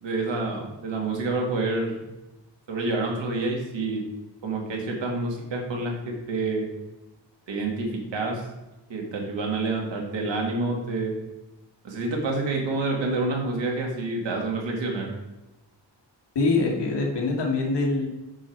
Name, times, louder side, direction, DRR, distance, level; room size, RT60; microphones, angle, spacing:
voice 1, 0.0-2.1 2.7-4.0 4.4-6.6 7.5-8.4 8.9-11.1 11.8-15.1, right 3 dB, 80° right, 1 dB, 2.2 m, -28 dB
voice 2, 16.4-18.1, left 3 dB, 70° left, 0 dB, 1.9 m, -24 dB
8.8 x 5.9 x 4.6 m, 0.99 s
wide cardioid pair, 125°, 43 cm